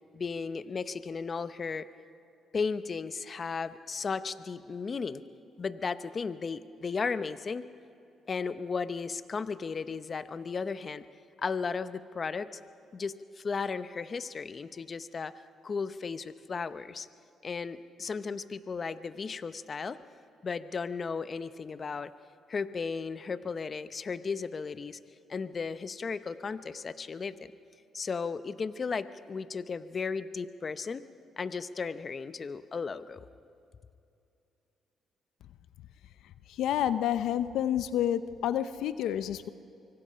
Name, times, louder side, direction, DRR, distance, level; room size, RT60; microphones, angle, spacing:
voice 1, 0.1-1.9 2.5-5.2 5.6-7.6 8.3-11.0 11.4-12.6 12.9-15.3 15.6-17.1 17.4-20.0 20.4-22.1 22.5-25.0 25.3-27.5 27.9-31.0 31.4-33.2, left 5 dB, 40° left, 13 dB, 0.7 m, -35 dB
voice 2, 36.5-39.5, left 10 dB, 80° left, 13 dB, 0.6 m, -29 dB
24.5 x 24.5 x 5.6 m, 2.6 s
cardioid pair, 90°, 0 cm